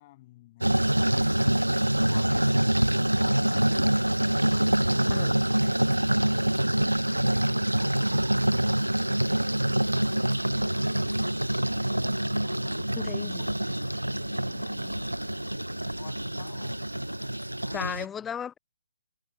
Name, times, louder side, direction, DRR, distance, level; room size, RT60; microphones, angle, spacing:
voice 1, 0.0-11.8 12.3-15.5 15.9-16.8 17.5-18.3, left 18 dB, 30° left, 7.3 m, -54 dB
sound 1, 0.6-18.0, right 1 dB, 85° right, 0.6 m, -26 dB
Gurgling / Trickle dribble / Fill (with liquid), 6.7-13.0 13.2-13.3 13.5-13.7 14.0-14.1, right 9 dB, 45° right, 3.2 m, -55 dB
voice 2, 13.0-13.4 17.7-18.6, left 8 dB, 10° left, 0.6 m, -35 dB
figure-of-eight pair, 135°, 0 cm